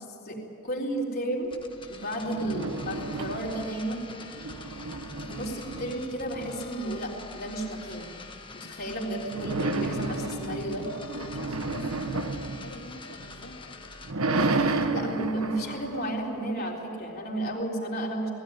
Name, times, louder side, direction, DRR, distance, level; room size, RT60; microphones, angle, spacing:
voice 1, 0.2-1.5 1.9-4.0 5.3-8.1 8.5-10.9 14.9-18.3, right 1 dB, 45° left, -2 dB, 3.8 m, -32 dB
sound 1, 1.4-14.1, left 4 dB, 25° left, 1.2 m, -46 dB
sound 2, 2.2-3.9 4.2-7.0 9.3-13.4 13.8-16.9, right 3 dB, 85° right, 1.2 m, -32 dB
voice 2, 11.1-13.8, left 1 dB, 70° left, 2 dB, 2.3 m, -46 dB
19.5 x 16.5 x 9.9 m, 2.4 s
head